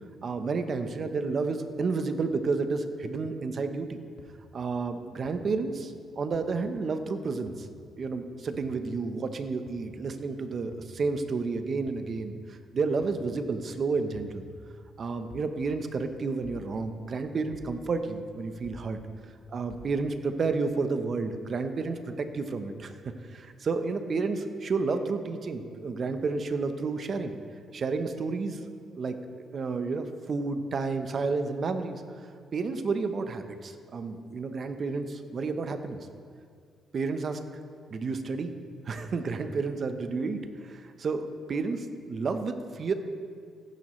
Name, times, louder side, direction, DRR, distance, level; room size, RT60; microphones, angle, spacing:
voice 1, 0.2-4.0 4.5-7.7 8.0-14.4 15.0-19.0 19.5-22.9 23.3-27.3 27.7-28.6 28.9-32.0 32.5-36.0 36.9-37.4 37.9-38.5 38.9-42.9, right 4 dB, 50° right, 8 dB, 0.9 m, -31 dB
sound 1, 4.2-4.3 5.2-5.3 6.3-6.4 7.5-7.6 8.5-8.7 9.7-9.9 10.7-10.9 11.9-12.1 13.0-13.2 14.1-14.4 15.3-15.5 16.4-16.7 17.5-17.7 18.6-18.9 19.7-19.9, left 4 dB, 65° left, 1.4 m, -49 dB
15.0 x 10.5 x 3.2 m, 2.1 s
cardioid pair, 90°, 0 cm